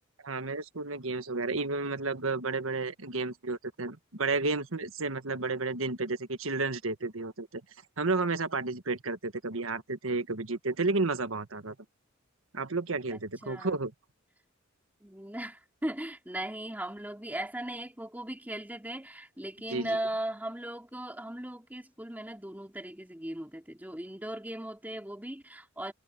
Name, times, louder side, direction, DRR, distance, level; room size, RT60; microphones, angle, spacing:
voice 1, 0.2-7.6 8.0-11.7 12.5-13.9 19.7-20.0, right 3 dB, 85° right, 1.5 m, -32 dB
voice 2, 13.1-13.8 15.0-25.9, right 1 dB, 10° right, 3.4 m, -38 dB
head